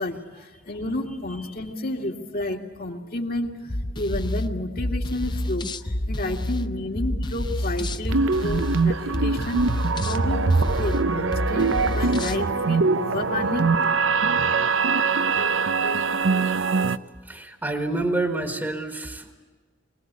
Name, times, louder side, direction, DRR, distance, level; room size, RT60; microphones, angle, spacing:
voice 1, 0.0-13.8, left 1 dB, 50° left, 1 dB, 2.3 m, -31 dB
sound 1, 3.7-12.4, left 1 dB, 25° left, 0.7 m, -29 dB
sound 2, 8.1-17.0, right 4 dB, 75° right, 0.7 m, -23 dB
voice 2, 17.2-19.3, right 2 dB, 10° right, 4 dB, 1.6 m, -28 dB
23.5 x 19.0 x 8.3 m, 1.4 s
head